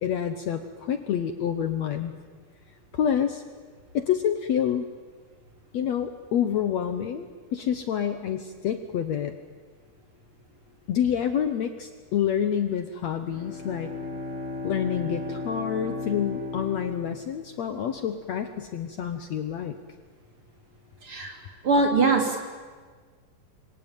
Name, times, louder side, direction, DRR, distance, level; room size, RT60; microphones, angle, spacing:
voice 1, 0.0-2.2 2.9-3.4 3.9-4.9 5.7-9.3 10.9-13.9 14.6-19.8, left 9 dB, 65° left, 8 dB, 2.0 m, -28 dB
Bowed string instrument, 13.2-17.8, left 3 dB, 20° left, 8.5 m, -35 dB
voice 2, 21.0-21.3 21.6-22.4, right 3 dB, 40° right, 3 dB, 3.9 m, -22 dB
27.0 x 23.0 x 9.1 m, 1.5 s
omnidirectional pair, 3.9 m